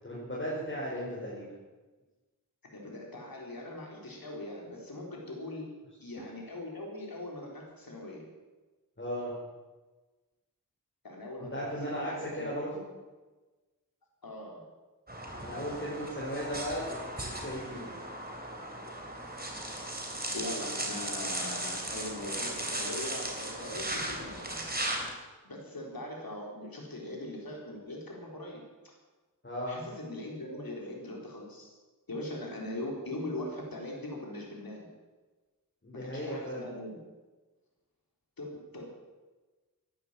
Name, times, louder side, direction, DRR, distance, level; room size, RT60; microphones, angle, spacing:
voice 1, 0.0-1.5 9.0-9.3 11.5-12.7 15.4-17.9 29.4-29.8 35.8-36.6, equal, 35° left, -7 dB, 5.4 m, -36 dB
voice 2, 2.7-5.7 6.0-8.2 11.0-12.5 14.2-14.6 15.3-16.1 18.8-19.0 20.3-24.6 25.4-28.6 29.7-31.7 32.1-34.9 35.9-37.0 38.4-38.8, left 1 dB, 90° left, -1 dB, 4.0 m, -41 dB
sound 1, 15.1-25.1, right 1 dB, 25° right, 3.3 m, -37 dB
16.0 x 11.0 x 7.4 m, 1.2 s
wide cardioid pair, 65°, 34 cm